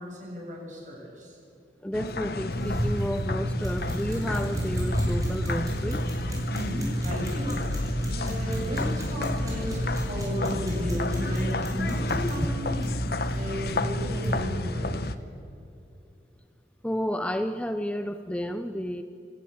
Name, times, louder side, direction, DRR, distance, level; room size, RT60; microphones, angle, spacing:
voice 1, 0.0-1.4 6.5-7.6 7.9-12.9 13.3-15.2, equal, 45° right, -2 dB, 7.9 m, -35 dB
voice 2, 1.8-6.0 16.8-19.0, equal, 5° left, 9 dB, 0.7 m, -31 dB
sound 1, 1.9-15.1, left 2 dB, 60° left, 1.0 m, -32 dB
sound 2, 2.5-14.4, right 1 dB, 20° right, 7.1 m, -31 dB
28.0 x 15.0 x 8.8 m, 2.7 s
head